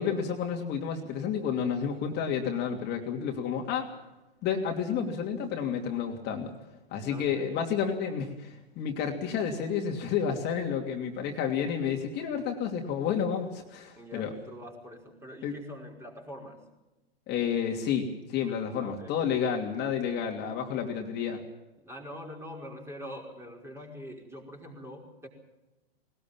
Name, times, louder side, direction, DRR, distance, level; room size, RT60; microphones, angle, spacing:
voice 1, 0.0-3.9 4.4-6.5 6.9-14.3 15.4-15.5 17.3-21.4, left 7 dB, 35° left, 2 dB, 2.9 m, -30 dB
voice 2, 7.1-7.7 14.0-16.6 18.7-19.2 21.8-25.3, equal, 10° right, 1 dB, 5.1 m, -44 dB
20.5 x 19.5 x 7.3 m, 1.0 s
hypercardioid pair, 110°, 31 cm